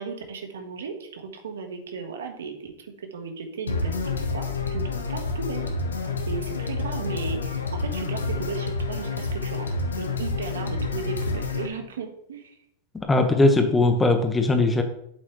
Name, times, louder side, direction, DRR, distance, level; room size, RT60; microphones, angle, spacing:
voice 1, 0.0-3.9 4.3-5.7 6.3-9.7 10.0-12.6, right 5 dB, 80° right, 5 dB, 1.4 m, -35 dB
sound 1, 3.7-11.7, left 3 dB, 90° left, 1.1 m, -28 dB
voice 2, 13.0-14.8, left 2 dB, 15° left, 6 dB, 1.3 m, -19 dB
8.2 x 7.8 x 3.2 m, 0.73 s
hypercardioid pair, 100°, 0 cm